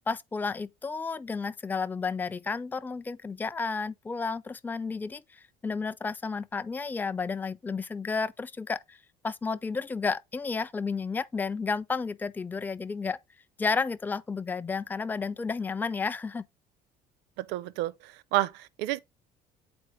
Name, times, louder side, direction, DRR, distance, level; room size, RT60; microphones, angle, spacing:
voice 1, 0.1-9.0 9.2-13.2 13.6-16.4, left 4 dB, 10° left, 0.4 m, -32 dB
voice 2, 17.4-19.0, right 15 dB, 55° right, 0.5 m, -30 dB
7.8 x 4.4 x 3.5 m
figure-of-eight pair, 60°, 21 cm